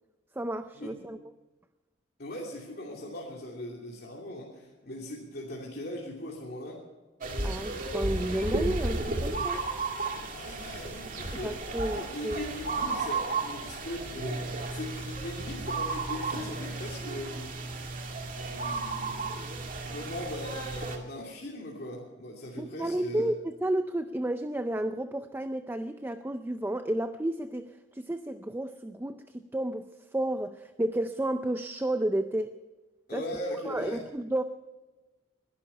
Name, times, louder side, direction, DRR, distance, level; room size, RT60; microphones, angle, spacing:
voice 1, 0.4-1.2 7.4-9.6 11.4-12.5 22.6-32.5 33.1-33.3 33.7-34.4, right 1 dB, 10° right, 9 dB, 0.5 m, -32 dB
voice 2, 2.2-6.8 10.3-11.5 11.9-17.6 18.3-19.3 19.8-23.3 33.1-34.0, left 1 dB, 55° left, -3 dB, 2.8 m, -39 dB
sound 1, 7.2-21.0, right 3 dB, 45° right, 2.2 m, -33 dB
21.5 x 11.5 x 5.6 m, 1.2 s
head